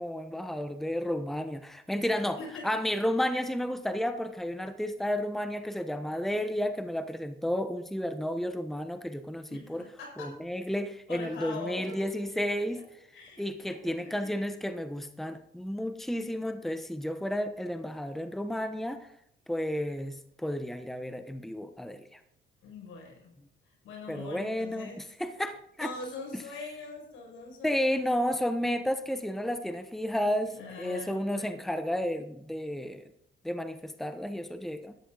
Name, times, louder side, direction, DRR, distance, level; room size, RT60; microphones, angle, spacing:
voice 1, 0.0-2.4 2.6-9.8 10.2-12.8 13.4-19.1 19.5-22.2 24.1-24.9 25.2-25.9 27.6-33.0 33.4-34.9, equal, ahead, 9 dB, 1.0 m, -32 dB
voice 2, 2.4-2.8 9.5-10.4 11.1-12.1 12.7-12.8 13.1-13.8 14.0-14.4 22.6-23.3 23.8-25.0 25.8-28.1 30.5-31.6, left 3 dB, 85° left, 1 dB, 5.5 m, -43 dB
13.0 x 9.9 x 3.9 m, 0.72 s
cardioid pair, 90°, 20 cm